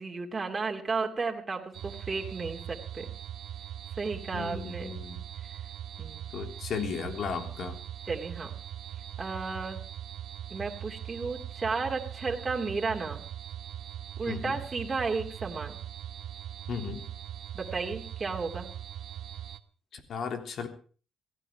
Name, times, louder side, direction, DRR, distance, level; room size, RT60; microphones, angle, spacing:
voice 1, 0.0-3.1 4.0-4.9 6.0-6.2 8.1-8.6 9.2-9.8 10.5-13.3 14.2-15.8 17.5-18.7, right 4 dB, 25° right, 0 dB, 2.8 m, -33 dB
sound 1, 1.7-19.6, right 11 dB, 70° right, 1.2 m, -41 dB
voice 2, 4.3-5.2 6.3-7.8 14.3-14.6 16.7-17.0 19.9-20.7, left 6 dB, 65° left, 7 dB, 3.4 m, -35 dB
17.0 x 16.0 x 4.8 m, 0.40 s
cardioid pair, 90°, 0 cm